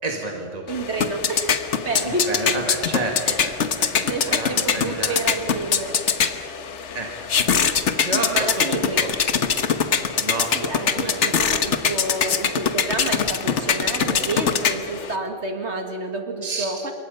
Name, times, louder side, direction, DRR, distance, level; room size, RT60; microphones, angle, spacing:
voice 1, 0.0-0.6 2.0-3.5 3.8-5.2 6.9-7.1 8.0-9.1 10.2-10.5 10.9-11.2 16.4-16.7, right 2 dB, 35° right, 1 dB, 2.2 m, -30 dB
sound 1, 0.7-15.2, left 6 dB, 70° left, 1.4 m, -23 dB
voice 2, 0.7-2.3 3.3-3.4 4.0-6.0 7.3-7.6 8.1-9.0 10.5-16.9, right 2 dB, 65° right, 4 dB, 2.2 m, -29 dB
26.5 x 22.5 x 5.6 m, 2.3 s
omnidirectional pair, 1.2 m